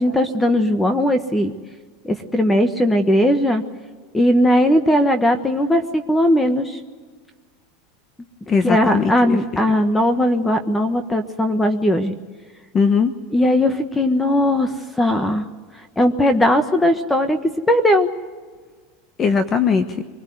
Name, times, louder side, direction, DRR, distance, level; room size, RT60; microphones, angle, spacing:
voice 1, 0.0-1.5 2.0-3.6 4.1-6.8 8.6-12.1 13.3-14.7 15.0-15.4 16.0-17.4 17.7-18.1, left 1 dB, 10° left, 9 dB, 1.3 m, -18 dB
voice 2, 8.5-9.4 9.7-9.8 12.7-13.1 19.2-20.0, left 5 dB, 25° left, 9 dB, 1.2 m, -19 dB
24.5 x 20.0 x 9.4 m, 1.5 s
supercardioid pair, 140°, 0 cm